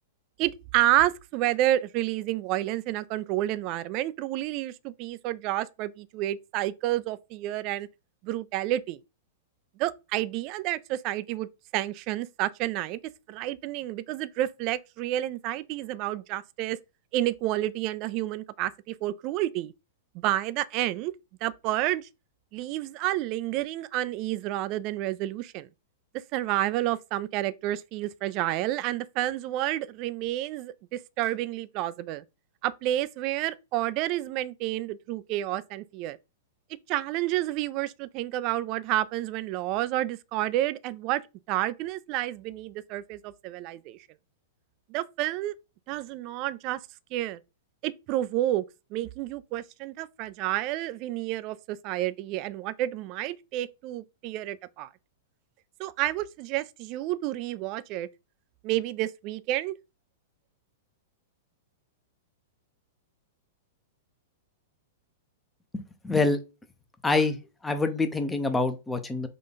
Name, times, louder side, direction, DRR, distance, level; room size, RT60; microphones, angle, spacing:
voice 1, 0.4-7.9 8.2-9.0 9.8-11.5 11.7-13.0 13.3-16.8 17.1-19.7 20.1-21.1 21.4-22.1 22.5-25.7 26.3-32.2 32.6-36.2 36.9-41.2 41.5-44.0 44.9-45.5 45.9-46.8 47.1-47.4 47.8-48.6 48.9-54.9 55.8-58.1 58.6-59.7, right 14 dB, 45° right, 0.3 m, -30 dB
voice 2, 65.7-66.4 67.0-67.4 67.6-69.3, left 3 dB, 10° left, 0.7 m, -26 dB
3.8 x 2.4 x 3.9 m
hypercardioid pair, 105°, 0 cm